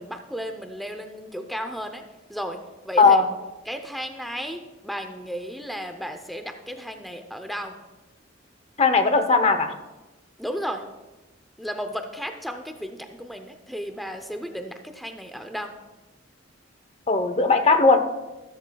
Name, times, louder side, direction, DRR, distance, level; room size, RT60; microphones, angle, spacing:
voice 1, 0.0-2.0 2.3-2.6 2.8-3.2 3.7-7.8 10.4-10.8 11.6-15.7, equal, ahead, 6 dB, 0.6 m, -34 dB
voice 2, 8.8-9.7 17.1-18.0, left 4 dB, 30° left, 7 dB, 0.8 m, -18 dB
14.5 x 13.0 x 2.3 m, 1.1 s
head